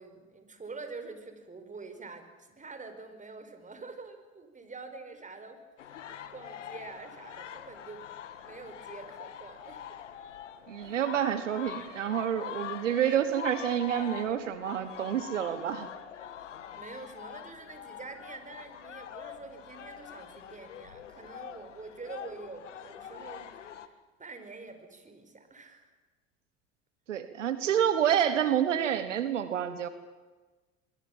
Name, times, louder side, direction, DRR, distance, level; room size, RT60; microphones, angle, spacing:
voice 1, 0.0-6.0 6.3-8.1 8.4-10.0 10.8-11.1 16.7-23.9 24.2-25.9, right 3 dB, 20° right, 8 dB, 4.9 m, -46 dB
sound 1, 5.8-23.9, left 9 dB, 85° left, 1.6 m, -44 dB
voice 2, 10.7-15.9 27.1-29.9, right 9 dB, 85° right, 12 dB, 1.4 m, -28 dB
24.0 x 23.0 x 7.4 m, 1.3 s
hypercardioid pair, 75°, 36 cm